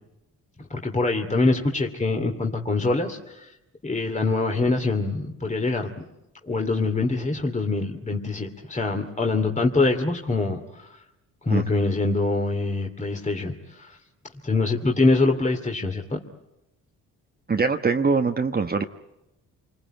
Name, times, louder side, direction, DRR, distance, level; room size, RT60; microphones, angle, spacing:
voice 1, 0.7-3.5 3.8-5.9 6.4-11.0 11.4-14.0 14.4-16.0, left 3 dB, 20° left, 3 dB, 2.5 m, -24 dB
voice 2, 11.5-11.8 17.5-18.8, right 4 dB, 25° right, 5 dB, 1.2 m, -23 dB
27.5 x 21.0 x 9.1 m, 0.93 s
supercardioid pair, 70°, 34 cm